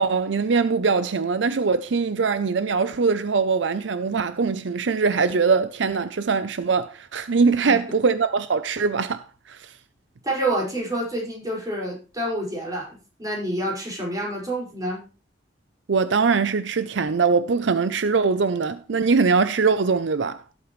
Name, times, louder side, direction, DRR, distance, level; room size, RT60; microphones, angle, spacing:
voice 1, 0.0-9.7 15.9-20.4, right 4 dB, 70° right, 0.6 m, -22 dB
voice 2, 10.2-15.0, right 1 dB, 20° right, 5.6 m, -28 dB
16.5 x 8.2 x 3.2 m
head